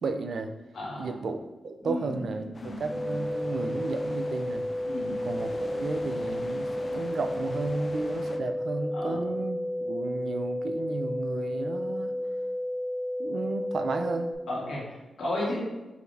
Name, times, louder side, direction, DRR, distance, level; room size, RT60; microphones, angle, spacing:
voice 1, 0.0-0.5 1.0-4.7 5.2-12.1 13.2-14.3, right 3 dB, 70° right, 7 dB, 0.4 m, -33 dB
voice 2, 0.7-1.1 1.8-3.2 4.8-5.2 8.9-9.2 14.5-15.6, left 1 dB, 85° left, -5 dB, 1.3 m, -34 dB
sound 1, 2.5-8.4, left 2 dB, 35° left, 0.4 m, -44 dB
sound 2, 2.9-14.3, left 1 dB, ahead, 0.6 m, -32 dB
4.8 x 2.6 x 3.3 m, 1.1 s
cardioid pair, 80°, 0 cm